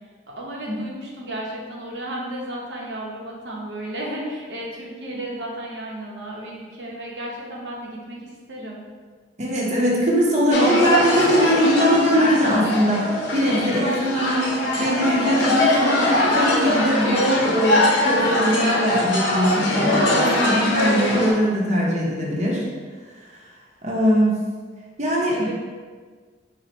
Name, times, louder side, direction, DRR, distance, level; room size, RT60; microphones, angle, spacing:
voice 1, 0.3-8.8 25.3-25.5, right 1 dB, 70° right, -3 dB, 0.8 m, -33 dB
voice 2, 9.4-22.7 23.8-24.4 25.0-25.5, equal, 40° right, -4 dB, 0.7 m, -21 dB
sound 1, 10.5-21.3, left 1 dB, 85° left, 0.7 m, -22 dB
4.1 x 2.1 x 4.2 m, 1.5 s
head